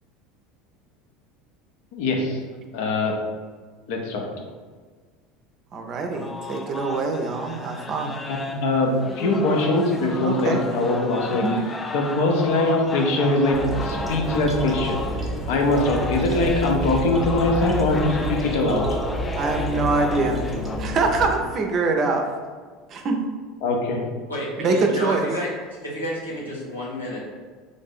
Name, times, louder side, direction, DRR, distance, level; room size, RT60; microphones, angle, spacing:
voice 1, 1.9-2.4 2.7-3.2 3.9-4.3 8.3-11.4 11.9-18.9 23.6-24.0, left 2 dB, 60° left, 1 dB, 0.6 m, -22 dB
voice 2, 5.7-8.2 10.2-10.7 11.4-11.6 19.4-20.5 20.8-22.3 22.9-23.2 24.6-25.3, right 3 dB, 40° right, 3 dB, 0.5 m, -24 dB
sound 1, 6.1-20.8, left 3 dB, 25° left, 0.3 m, -34 dB
sound 2, 13.5-21.4, equal, 20° right, 0.9 m, -29 dB
voice 3, 24.3-25.5 25.8-27.2, equal, 85° left, -5 dB, 1.0 m, -30 dB
3.3 x 2.6 x 4.0 m, 1.5 s
figure-of-eight pair, 70°, 0 cm